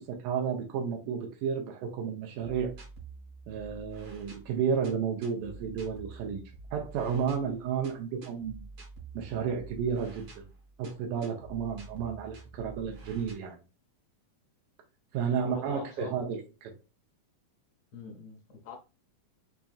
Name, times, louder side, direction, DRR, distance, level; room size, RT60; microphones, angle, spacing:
voice 1, 0.0-2.8 3.5-6.4 6.7-8.7 9.1-10.5 10.8-13.6 15.1-16.7, right 7 dB, 85° right, 2.3 m, -32 dB
sound 1, 2.4-13.3, right 3 dB, 65° right, 1.3 m, -48 dB
voice 2, 15.3-16.2 17.9-18.8, left 3 dB, 70° left, 1.5 m, -43 dB
5.8 x 2.6 x 2.3 m
omnidirectional pair, 3.7 m